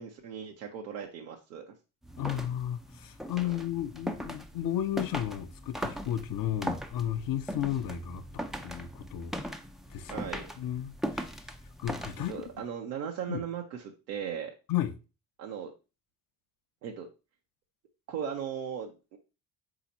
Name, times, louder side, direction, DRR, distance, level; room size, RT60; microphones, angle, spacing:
voice 1, 0.0-1.7 3.4-3.5 10.1-10.5 12.3-14.5 15.4-15.7 16.8-17.1 18.1-19.2, right 8 dB, 80° right, 0.7 m, -37 dB
sound 1, 2.0-12.6, equal, ahead, 0.3 m, -39 dB
voice 2, 2.2-9.3 9.9-10.3 10.6-12.3 13.3-13.4 14.7-15.0, left 11 dB, 45° left, 0.6 m, -34 dB
4.1 x 2.9 x 4.0 m
hypercardioid pair, 50°, 49 cm